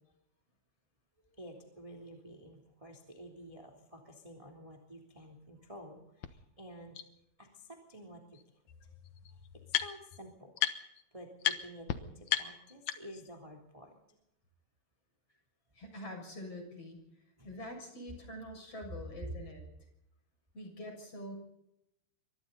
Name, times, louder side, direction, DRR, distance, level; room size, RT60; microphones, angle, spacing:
voice 1, 1.3-7.0 7.4-8.4 8.8-9.0 9.3-9.4 9.7-10.5 11.1-14.2 15.3-15.4 17.4-17.5, equal, 10° right, 3 dB, 2.6 m, -51 dB
sound 1, 6.2-6.3 6.9-7.0 8.3-8.4 8.7-10.2 10.6-11.0 11.4-11.6 11.9-12.0 12.3-13.3, left 12 dB, 90° left, 1.6 m, -34 dB
voice 2, 15.7-17.0 17.4-19.6 20.5-21.4, left 1 dB, 30° left, 4 dB, 7.4 m, -45 dB
27.0 x 24.5 x 4.1 m, 0.81 s
omnidirectional pair, 5.2 m